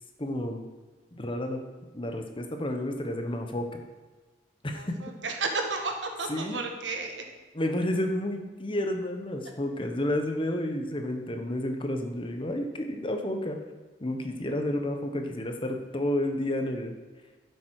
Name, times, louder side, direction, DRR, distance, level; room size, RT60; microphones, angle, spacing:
voice 1, 0.2-0.7 1.1-1.6 1.9-3.8 4.6-4.9 6.3-6.6 7.5-13.6 14.0-16.9, left 1 dB, 30° left, 5 dB, 1.1 m, -31 dB
voice 2, 4.7-7.2, right 3 dB, 80° right, 4 dB, 1.5 m, -32 dB
10.5 x 7.7 x 4.8 m, 1.3 s
head